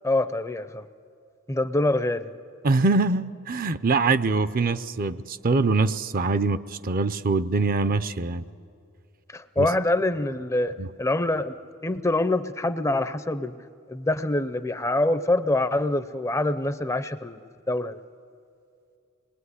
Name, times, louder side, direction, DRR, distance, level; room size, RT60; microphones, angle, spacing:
voice 1, 0.0-0.8 1.5-2.3 9.3-13.6 13.9-18.0, left 2 dB, 15° left, 12 dB, 0.5 m, -25 dB
voice 2, 2.6-8.4 9.6-9.7 10.8-10.9, right 3 dB, 40° right, 13 dB, 0.6 m, -23 dB
26.5 x 21.0 x 9.7 m, 2.5 s
head